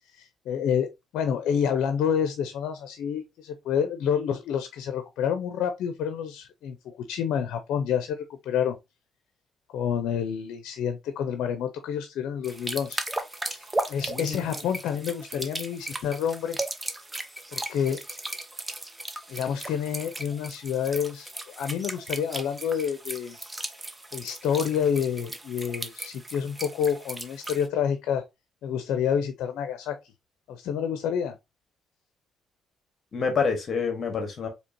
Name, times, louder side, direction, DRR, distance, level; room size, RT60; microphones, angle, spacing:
voice 1, 0.1-8.8 9.7-13.0 13.5-13.6 13.9-16.6 17.5-18.0 19.3-23.4 24.1-28.2 28.6-30.0 30.5-31.4, left 8 dB, 85° left, 0.5 m, -28 dB
sound 1, 12.4-27.7, right 2 dB, 15° right, 0.7 m, -36 dB
voice 2, 14.1-14.4 33.1-34.5, left 5 dB, 50° left, 1.1 m, -27 dB
4.4 x 2.9 x 2.5 m
cardioid pair, 90°, 0 cm